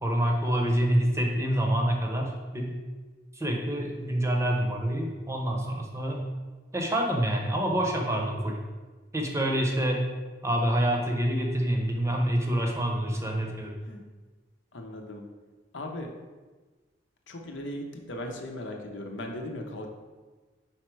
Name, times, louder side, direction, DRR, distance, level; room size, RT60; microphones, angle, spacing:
voice 1, 0.0-2.7 3.3-6.3 6.7-8.6 9.1-10.1 10.4-13.7, right 1 dB, 15° right, 1 dB, 0.7 m, -27 dB
voice 2, 14.7-15.2 15.7-16.1 17.3-19.9, left 1 dB, 80° left, 2 dB, 0.8 m, -37 dB
4.9 x 4.3 x 4.6 m, 1.3 s
head